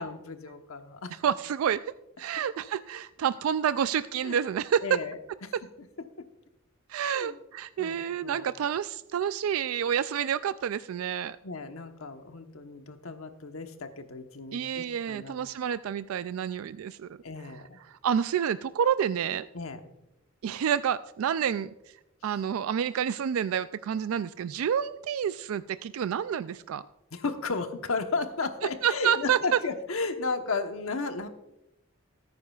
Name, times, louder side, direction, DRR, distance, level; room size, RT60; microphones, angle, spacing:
voice 1, 0.0-1.1 4.2-4.4 4.8-5.5 7.0-7.4 7.8-8.5 11.4-15.3 17.2-17.8 19.5-19.9 27.1-31.3, left 4 dB, 90° left, 7 dB, 1.1 m, -34 dB
voice 2, 1.2-1.8 2.2-5.0 6.9-11.4 14.5-17.1 17.9-19.5 20.4-21.7 22.2-26.9 28.8-29.6, right 8 dB, 90° right, 14 dB, 0.3 m, -28 dB
19.0 x 9.5 x 2.4 m, 0.88 s
head